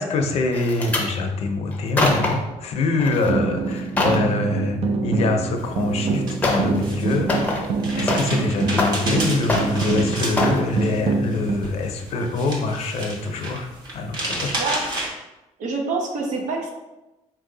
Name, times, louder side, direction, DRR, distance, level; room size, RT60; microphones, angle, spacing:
voice 1, 0.0-7.6 8.0-13.7 13.9-14.5, left 3 dB, 55° left, 4 dB, 0.6 m, -24 dB
sound 1, 0.5-1.1 1.7-2.5 3.0-3.3 3.7-4.3 5.6-5.7 6.4-6.8 7.1-8.4 8.7-9.2 9.5-10.0 10.4-10.6 11.1-11.3 11.6-11.7, left 2 dB, 10° left, 0.6 m, -24 dB
sound 2, 3.3-11.6, right 4 dB, 55° right, 0.4 m, -25 dB
sound 3, 5.6-15.1, right 1 dB, 35° right, 0.9 m, -32 dB
voice 2, 15.6-16.7, right 3 dB, 75° right, 2 dB, 0.8 m, -26 dB
4.4 x 2.7 x 3.8 m, 1.0 s
cardioid pair, 160°, 12 cm